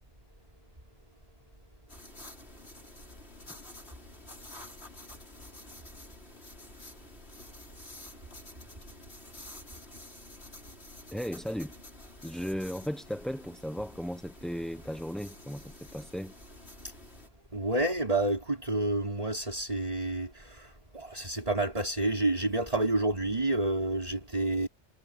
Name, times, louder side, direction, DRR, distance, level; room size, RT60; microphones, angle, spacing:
sound 1, 1.9-17.3, left 1 dB, 60° left, 6.8 m, -50 dB
voice 1, 11.1-11.7 12.2-16.3, equal, ahead, 0.9 m, -36 dB
voice 2, 17.5-24.7, right 2 dB, 30° right, 5.2 m, -29 dB
omnidirectional pair, 1.2 m